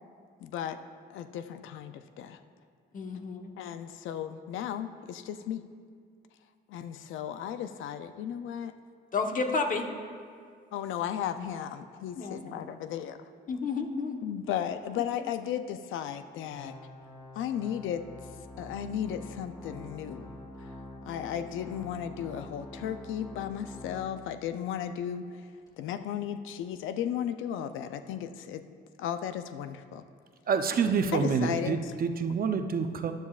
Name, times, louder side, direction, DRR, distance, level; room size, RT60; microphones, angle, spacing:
voice 1, 0.4-0.8 1.1-2.4 3.6-5.6 6.7-8.7 10.7-13.3 14.2-16.7 17.3-18.0 18.6-20.3 21.1-25.4 25.8-28.6 29.0-30.0 31.1-31.8, left 9 dB, 85° left, 10 dB, 0.5 m, -35 dB
voice 2, 2.9-3.5 9.1-9.9 12.2-12.5 13.5-14.2, left 4 dB, 40° left, 3 dB, 1.1 m, -31 dB
Organ, 16.5-24.5 24.9-25.0 25.7-25.8, left 1 dB, 20° left, 2.4 m, -46 dB
voice 3, 30.5-33.1, right 6 dB, 50° right, 7 dB, 0.6 m, -27 dB
14.0 x 10.5 x 2.4 m, 2.1 s
cardioid pair, 90°, 20 cm